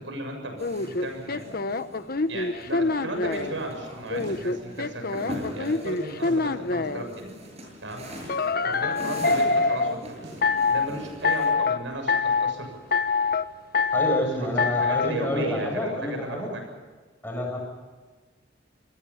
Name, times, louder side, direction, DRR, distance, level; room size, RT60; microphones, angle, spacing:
voice 1, 0.0-1.6 2.3-7.3 7.8-8.1 8.3-12.8 14.3-16.7, right 1 dB, 85° right, 4 dB, 7.1 m, -36 dB
sound 1, 0.6-3.5 4.1-7.0 8.3-9.9 10.4-10.9 11.2-11.8 12.1-12.6 12.9-13.4 13.7-14.2 14.6-15.1, left 4 dB, 55° left, 1.0 m, -25 dB
sound 2, 0.6-11.5, equal, 35° right, 8.0 m, -41 dB
sound 3, 4.2-4.5 6.2-6.5 8.2-8.5 10.2-10.5, right 1 dB, 65° right, 7.3 m, -47 dB
voice 2, 13.9-16.5 17.2-17.6, equal, 10° left, 0 dB, 7.7 m, -28 dB
28.0 x 20.5 x 5.8 m, 1.4 s
head